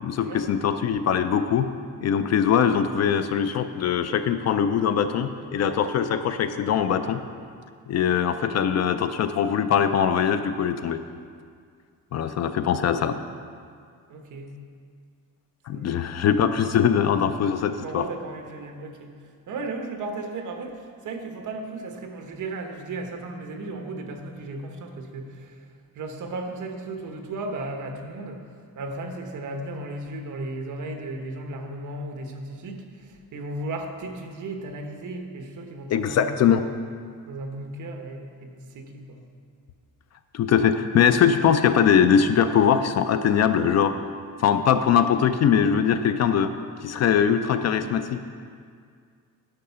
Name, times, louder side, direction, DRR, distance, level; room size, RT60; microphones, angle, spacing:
voice 1, 0.0-1.7 2.0-7.2 7.9-11.0 12.1-13.2 15.7-18.1 35.9-36.6 40.3-44.0 44.4-46.5 46.8-48.2, left 8 dB, 50° left, 10 dB, 0.4 m, -22 dB
voice 2, 14.1-14.6 15.7-16.1 17.7-19.2 19.5-25.7 25.9-36.5 37.3-39.2, right 2 dB, 60° right, 4 dB, 1.1 m, -35 dB
10.5 x 6.4 x 5.6 m, 2.1 s
cardioid pair, 170°, 35 cm